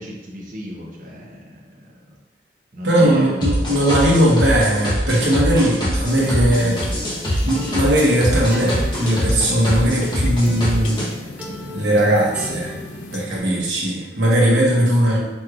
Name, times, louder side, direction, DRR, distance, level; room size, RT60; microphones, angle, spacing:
voice 1, 0.0-2.2 2.7-4.3, equal, 50° right, -3 dB, 0.9 m, -34 dB
voice 2, 2.8-7.0 7.4-11.0 11.7-12.7 13.1-15.2, right 1 dB, 75° right, -4 dB, 1.1 m, -18 dB
sound 1, 3.4-11.1, equal, 25° left, 1.0 m, -24 dB
sound 2, 5.6-13.3, equal, 10° right, 0.4 m, -36 dB
sound 3, 6.1-13.3, left 3 dB, 80° left, 0.4 m, -37 dB
5.3 x 3.1 x 2.5 m, 1.1 s
head